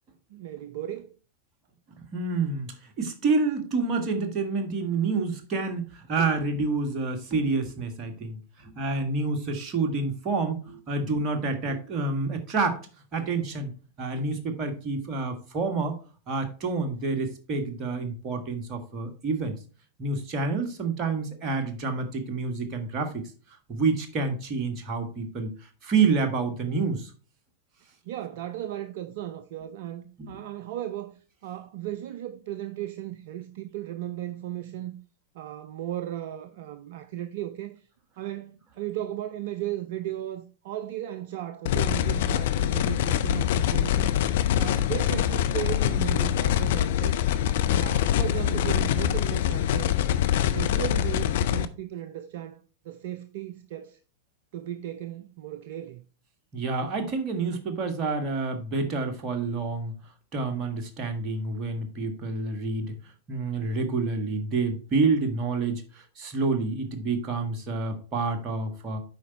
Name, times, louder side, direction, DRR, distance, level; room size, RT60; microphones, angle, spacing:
voice 1, 0.3-1.1 28.0-35.0 35.3-37.8 38.2-44.1 44.6-47.2 47.8-49.9 50.4-54.0 54.5-56.0, right 13 dB, 55° right, 0.5 m, -36 dB
voice 2, 2.1-12.8 13.1-13.7 14.0-15.9 16.3-19.6 20.0-23.3 23.7-25.5 25.8-27.1 30.2-30.4 56.5-59.9 60.3-62.9 63.3-69.0, right 4 dB, 30° right, 1.6 m, -28 dB
sound 1, 41.7-51.7, left 11 dB, 55° left, 0.5 m, -24 dB
8.2 x 5.1 x 4.3 m
figure-of-eight pair, 90°, 0 cm